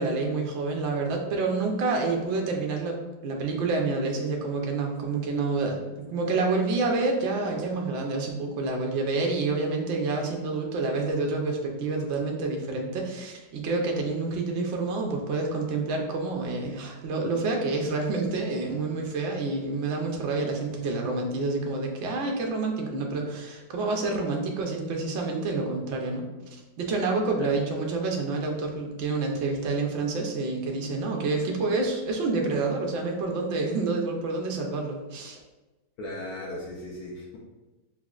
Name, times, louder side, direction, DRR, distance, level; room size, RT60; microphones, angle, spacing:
voice 1, 0.0-26.2 26.5-35.4, right 3 dB, 85° right, 1 dB, 0.6 m, -28 dB
voice 2, 36.0-37.4, left 1 dB, 70° left, -3 dB, 1.0 m, -37 dB
5.7 x 2.1 x 2.3 m, 1.1 s
omnidirectional pair, 1.9 m